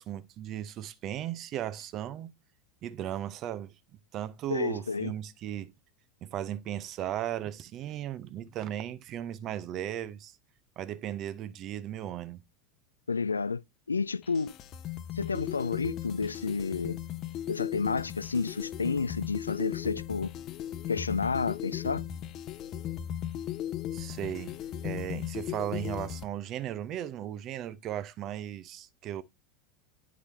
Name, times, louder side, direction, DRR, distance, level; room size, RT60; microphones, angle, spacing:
voice 1, 0.0-2.3 2.8-3.8 4.1-5.7 6.2-10.4 10.8-12.4 23.9-24.6 24.8-29.2, right 11 dB, 40° right, 0.7 m, -36 dB
voice 2, 4.5-5.1 13.1-13.6 13.9-14.5 15.1-17.0 17.5-20.3 20.9-22.0, left 4 dB, 80° left, 0.3 m, -30 dB
sound 1, 14.2-26.2, left 11 dB, 40° left, 0.7 m, -37 dB
9.7 x 4.8 x 3.4 m
figure-of-eight pair, 80°, 0 cm